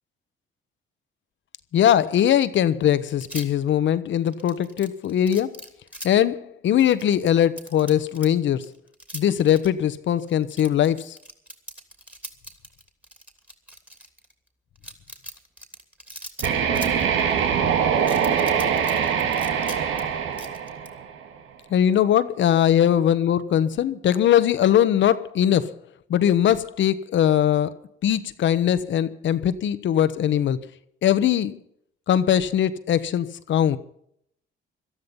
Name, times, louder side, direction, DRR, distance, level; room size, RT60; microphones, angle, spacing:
voice 1, 1.7-5.5 6.0-8.7 9.1-11.2 21.7-25.7 26.1-27.7 28.0-30.6 31.0-31.6 32.1-33.8, left 10 dB, 70° left, 1.2 m, -21 dB
sound 1, 3.1-3.7 4.3-6.1 6.8-8.3 8.6-9.7 10.2-14.3 14.8-17.4 18.0-20.0 20.3-20.9, right 1 dB, 5° right, 2.9 m, -40 dB
sound 2, 16.4-21.3, right 7 dB, 90° right, 1.9 m, -23 dB
18.0 x 13.0 x 5.5 m
cardioid pair, 90°, 20 cm